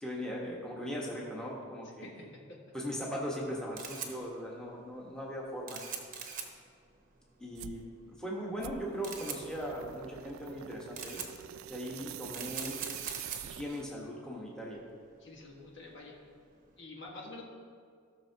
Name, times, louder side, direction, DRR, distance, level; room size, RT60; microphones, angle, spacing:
voice 1, 0.0-2.2 2.7-5.8 7.4-11.2 11.7-12.8 13.4-14.8, equal, 5° left, -4 dB, 1.3 m, -39 dB
Camera, 3.4-16.7, right 6 dB, 40° right, 1.0 m, -45 dB
sound 1, 7.5-7.8 8.6-14.0, right 10 dB, 80° right, 0.3 m, -46 dB
voice 2, 15.2-16.2 16.8-17.4, left 2 dB, 60° left, -2 dB, 1.6 m, -47 dB
16.5 x 6.3 x 2.9 m, 2.1 s
head